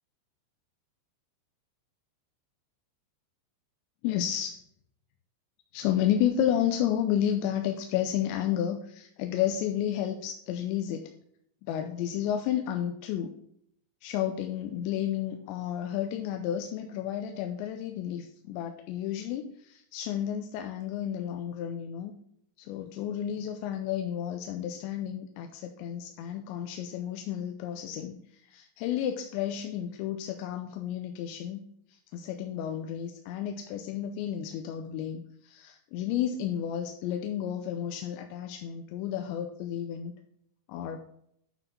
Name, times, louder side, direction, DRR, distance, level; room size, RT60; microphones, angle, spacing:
voice 1, 4.0-4.6 5.7-11.0 11.6-13.3 14.0-22.1 22.6-28.2 28.5-31.6 32.1-40.1 40.7-41.0, left 10 dB, 85° left, 5 dB, 2.8 m, -31 dB
9.3 x 5.8 x 4.1 m, 0.69 s
omnidirectional pair, 5.4 m